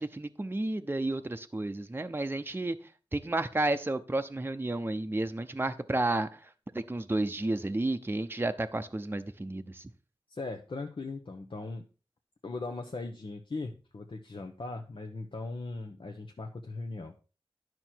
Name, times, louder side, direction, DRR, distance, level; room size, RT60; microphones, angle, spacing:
voice 1, 0.0-2.8 3.1-6.4 6.7-9.8, right 2 dB, 20° right, 8 dB, 0.7 m, -31 dB
voice 2, 10.3-11.8 12.4-17.2, left 3 dB, 60° left, 3 dB, 1.0 m, -39 dB
11.0 x 6.1 x 4.5 m, 0.35 s
wide cardioid pair, 70°, 10 cm